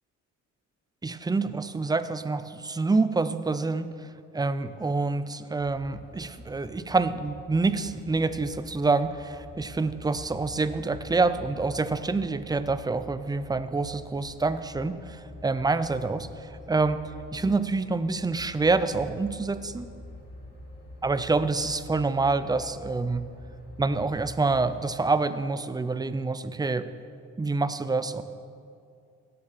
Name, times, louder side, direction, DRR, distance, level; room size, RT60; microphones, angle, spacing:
voice 1, 1.0-4.0 4.3-19.9 21.0-23.3 23.8-26.9 27.4-28.2, right 3 dB, 15° right, 13 dB, 0.6 m, -27 dB
sound 1, 5.6-24.9, left 2 dB, 35° left, 3.6 m, -46 dB
16.5 x 7.7 x 5.8 m, 2.4 s
cardioid pair, 90°, 30 cm